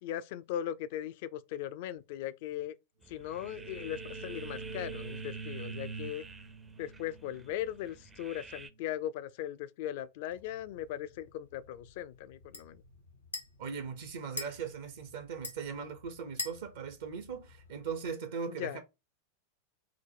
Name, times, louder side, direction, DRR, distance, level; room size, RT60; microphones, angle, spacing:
voice 1, 0.0-2.8 3.1-6.3 6.8-12.8 18.5-18.8, left 11 dB, 50° left, 0.3 m, -39 dB
sound 1, 3.0-8.7, right 4 dB, 15° right, 0.4 m, -51 dB
sound 2, 3.1-8.7, right 4 dB, 85° right, 0.8 m, -45 dB
sound 3, 10.3-18.1, left 2 dB, 80° left, 0.9 m, -47 dB
voice 2, 13.6-18.8, right 6 dB, 60° right, 0.6 m, -39 dB
4.7 x 2.0 x 3.4 m
figure-of-eight pair, 90°, 0 cm